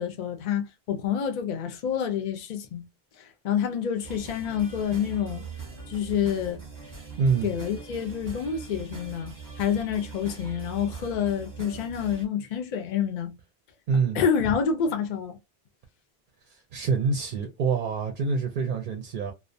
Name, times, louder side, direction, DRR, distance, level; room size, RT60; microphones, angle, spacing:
voice 1, 0.0-2.9 3.2-5.5 5.9-6.6 7.4-13.4 14.1-15.4, left 8 dB, 55° left, 0.6 m, -28 dB
sound 1, 4.0-12.3, right 5 dB, 20° right, 0.8 m, -41 dB
voice 2, 7.2-7.5 13.9-14.2 16.7-19.3, right 5 dB, 60° right, 0.6 m, -26 dB
2.3 x 2.1 x 2.5 m
omnidirectional pair, 1.0 m